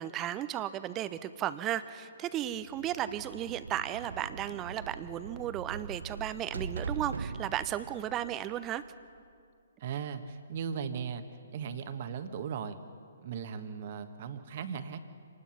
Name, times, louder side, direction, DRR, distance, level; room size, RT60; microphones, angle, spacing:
voice 1, 0.0-8.8, right 12 dB, 20° right, 13 dB, 0.8 m, -35 dB
sound 1, 2.4-9.2, right 4 dB, 65° right, 0.7 m, -42 dB
voice 2, 9.8-11.2 11.5-12.8 13.2-15.0, right 7 dB, 45° right, 9 dB, 1.4 m, -37 dB
26.0 x 19.5 x 5.8 m, 2.3 s
figure-of-eight pair, 130°, 0 cm